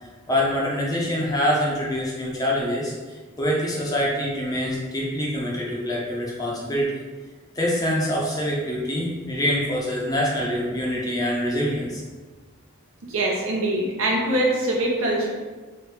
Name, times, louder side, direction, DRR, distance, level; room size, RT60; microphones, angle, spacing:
voice 1, 0.3-6.9 7.5-12.0, equal, 15° left, -4 dB, 0.6 m, -25 dB
voice 2, 13.1-15.3, right 1 dB, 75° right, -2 dB, 0.8 m, -23 dB
3.2 x 2.5 x 3.2 m, 1.3 s
head